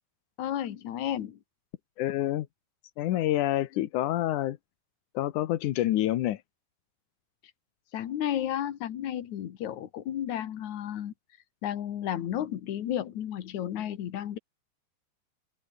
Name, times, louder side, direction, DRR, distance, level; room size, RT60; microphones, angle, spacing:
voice 1, 0.4-1.4 7.9-11.1 11.6-14.4, left 11 dB, 55° left, 2.4 m, -32 dB
voice 2, 2.0-2.5 3.0-4.6 5.1-6.4, left 14 dB, 75° left, 1.9 m, -27 dB
omnidirectional pair, 5.0 m